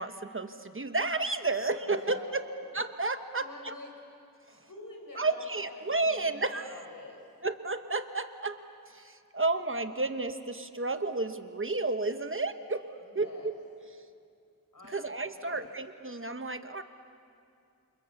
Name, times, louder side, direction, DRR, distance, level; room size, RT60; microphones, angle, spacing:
voice 1, 0.0-2.4 2.7-3.7 5.1-6.7 7.4-8.6 8.9-12.9 13.1-13.6 14.9-16.8, right 3 dB, 40° right, 8 dB, 1.1 m, -32 dB
voice 2, 1.9-2.6 3.3-3.9 4.5-7.2 13.1-13.5 14.7-15.0 15.4-15.7, left 2 dB, 70° left, 1 dB, 5.7 m, -47 dB
28.0 x 28.0 x 7.1 m, 2.4 s
wide cardioid pair, 85°, 34 cm